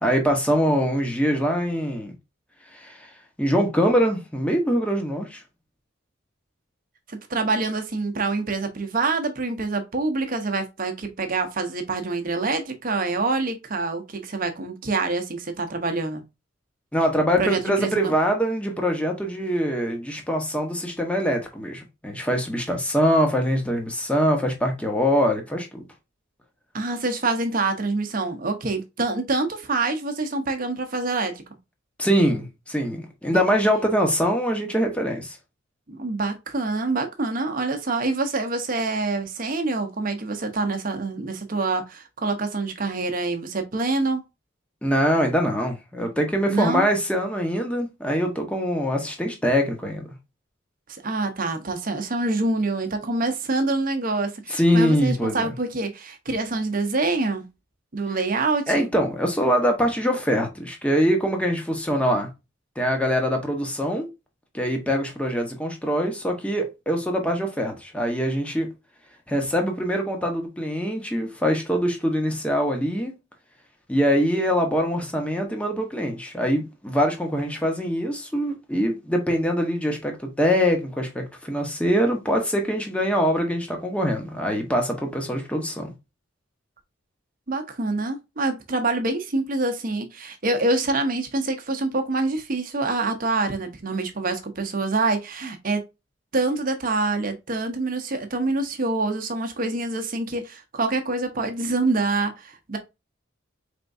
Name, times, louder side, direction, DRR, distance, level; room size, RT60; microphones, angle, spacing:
voice 1, 0.0-2.1 2.7-3.1 3.4-5.4 16.9-25.8 32.0-35.4 44.8-50.1 54.5-55.5 58.7-62.3 62.8-64.1 64.5-68.7 69.3-73.1 73.9-85.9, equal, 5° left, 0.9 m, -23 dB
voice 2, 7.1-16.2 17.4-18.1 26.7-31.3 33.3-33.4 35.9-44.2 46.5-46.9 50.9-57.5 57.9-58.9 87.5-95.8 96.3-102.8, right 3 dB, 45° right, 0.8 m, -26 dB
4.4 x 3.4 x 2.6 m
head